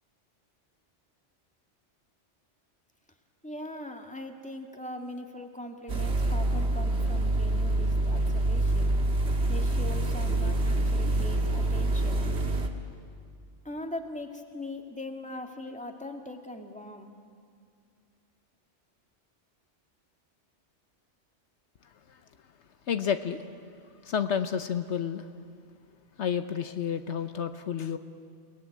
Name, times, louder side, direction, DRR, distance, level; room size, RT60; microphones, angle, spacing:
voice 1, 3.4-8.9 9.5-12.2 13.6-17.2, left 1 dB, 5° left, 4 dB, 2.0 m, -40 dB
sound 1, 5.9-12.7, right 2 dB, 65° right, 1.9 m, -26 dB
voice 2, 22.9-23.4 24.0-25.3 26.2-28.0, left 7 dB, 70° left, 9 dB, 1.1 m, -30 dB
29.0 x 19.0 x 9.5 m, 2.3 s
omnidirectional pair, 1.2 m